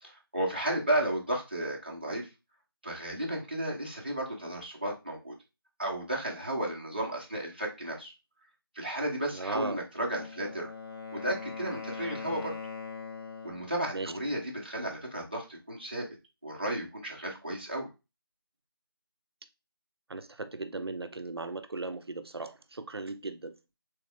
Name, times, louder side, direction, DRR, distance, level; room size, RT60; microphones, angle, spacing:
voice 1, 0.0-2.3 2.8-5.3 5.8-8.1 8.7-10.7 11.1-12.5 13.4-16.1 16.4-17.9, right 1 dB, 25° right, 0.9 m, -33 dB
voice 2, 9.3-9.8 13.9-14.1 20.1-23.5, right 3 dB, 90° right, 0.6 m, -37 dB
Wind instrument woodwind instrument, 9.9-13.7, left 5 dB, 75° left, 1.5 m, -41 dB
3.4 x 3.2 x 3.3 m
figure-of-eight pair, 180°, 13 cm